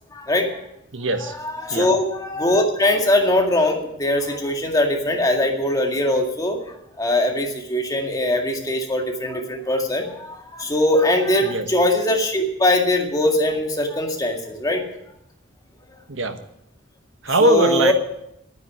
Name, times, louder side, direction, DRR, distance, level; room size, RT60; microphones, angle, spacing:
voice 1, 0.1-0.5 1.6-6.6 7.0-14.8 17.4-17.9, left 1 dB, 20° left, 2 dB, 2.0 m, -21 dB
voice 2, 0.9-1.3 1.7-1.9 11.4-11.6 16.1-16.4 17.2-17.9, right 1 dB, 75° right, 7 dB, 1.3 m, -20 dB
9.5 x 9.4 x 9.9 m, 0.80 s
head